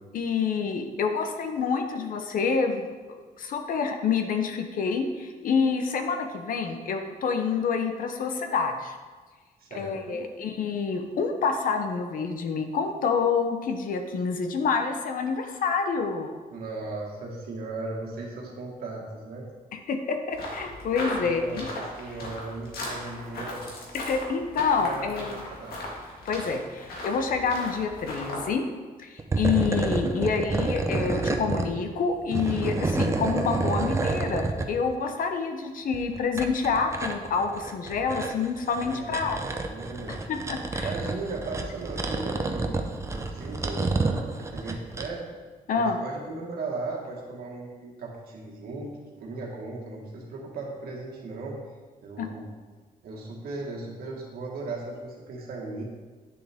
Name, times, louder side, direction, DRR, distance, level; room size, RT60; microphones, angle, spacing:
voice 1, 0.1-2.9 3.4-9.0 9.7-16.5 19.7-21.7 23.9-25.4 26.2-28.7 29.0-39.4 40.1-40.9 45.7-46.0 52.2-52.3, left 5 dB, 65° left, 5 dB, 0.8 m, -27 dB
voice 2, 9.6-10.2 16.5-19.5 21.1-21.6 22.0-23.6 24.8-25.8 38.8-40.2 40.8-42.8 43.1-45.2 45.7-51.6 52.0-52.5 53.0-55.8, right 3 dB, 80° right, -2 dB, 1.7 m, -37 dB
sound 1, 20.3-28.5, left 1 dB, 85° left, 1.9 m, -37 dB
sound 2, 29.2-31.7 32.1-34.7 35.9-45.1, right 3 dB, 20° right, 0.6 m, -29 dB
9.6 x 7.1 x 3.6 m, 1.4 s
wide cardioid pair, 165°, 15 cm